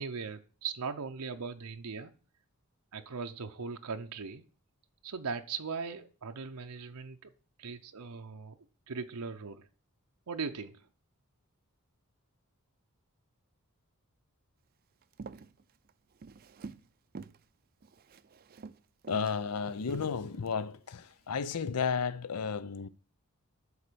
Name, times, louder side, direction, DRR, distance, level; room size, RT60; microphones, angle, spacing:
voice 1, 0.0-2.1 2.9-4.4 5.0-7.3 7.6-8.6 8.9-9.7 10.3-10.9, right 5 dB, 90° right, 0.7 m, -39 dB
Walk footsteps, 15.0-16.9 17.1-17.4 17.8-20.5 21.0-21.3, right 4 dB, 40° right, 0.4 m, -49 dB
voice 2, 19.1-22.9, left 6 dB, 85° left, 0.6 m, -33 dB
12.0 x 4.4 x 6.8 m
head